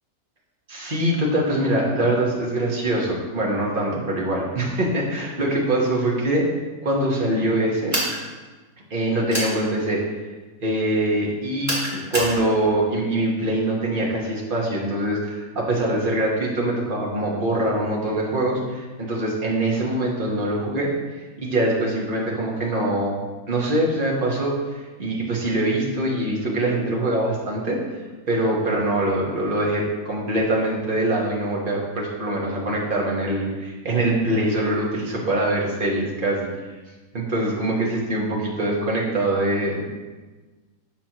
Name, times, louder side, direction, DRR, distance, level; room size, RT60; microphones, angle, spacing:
voice 1, 0.7-6.5 6.8-8.0 8.9-10.3 10.6-20.9 21.4-23.2 23.5-27.8 28.3-36.5 37.1-39.9, right 1 dB, 35° right, -3 dB, 1.2 m, -23 dB
sound 1, 7.9-8.2 9.3-9.6 11.7-12.4, right 1 dB, 10° right, 1.6 m, -25 dB
7.2 x 5.9 x 3.0 m, 1.3 s
omnidirectional pair, 1.9 m